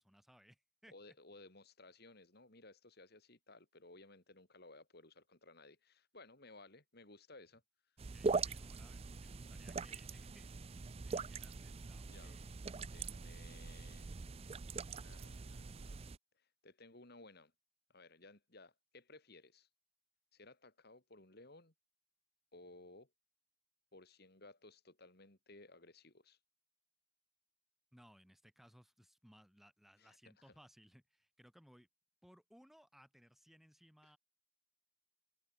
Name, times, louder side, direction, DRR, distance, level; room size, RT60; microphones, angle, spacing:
voice 1, 0.0-0.9 8.1-10.5 11.0-12.5 27.9-31.9 32.2-34.2, equal, ahead, 4.2 m, -64 dB
voice 2, 0.9-7.6 12.0-12.4 12.9-14.1 14.9-16.0 16.3-17.5 17.9-19.7 20.3-21.7 22.5-23.1 23.9-26.4 30.0-30.6 34.0-34.1, left 2 dB, 50° left, 3.2 m, -59 dB
sound 1, 8.0-16.2, right 4 dB, 30° right, 0.4 m, -42 dB
head